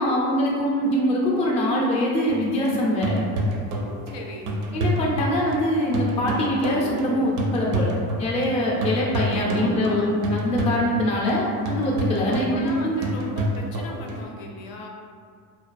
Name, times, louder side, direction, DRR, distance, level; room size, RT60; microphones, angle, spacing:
voice 1, 0.0-3.2 4.7-7.9 8.2-13.0, left 1 dB, 15° left, -4 dB, 0.3 m, -23 dB
sound 1, 2.3-8.6 8.8-14.2, right 1 dB, 45° right, 0.4 m, -29 dB
voice 2, 4.1-4.5 9.5-10.1 12.5-14.9, left 1 dB, 75° left, 0 dB, 0.5 m, -37 dB
2.3 x 2.2 x 2.4 m, 2.1 s
supercardioid pair, 105°, 42 cm